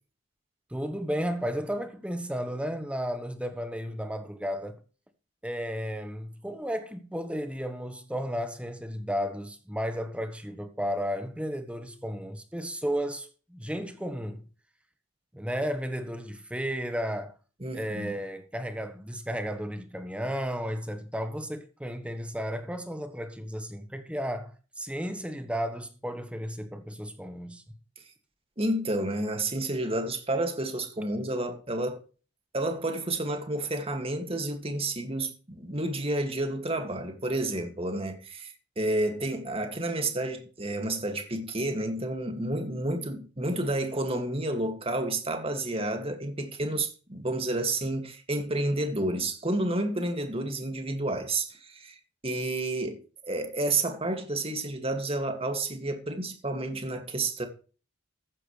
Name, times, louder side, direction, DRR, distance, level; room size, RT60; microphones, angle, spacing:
voice 1, 0.7-4.8 5.4-14.4 15.3-17.3 17.7-27.6, equal, 5° right, 1.2 m, -33 dB
voice 2, 17.6-18.1 28.6-32.0 32.5-52.0 52.2-57.5, right 2 dB, 30° right, 2.2 m, -30 dB
15.0 x 11.5 x 3.3 m
head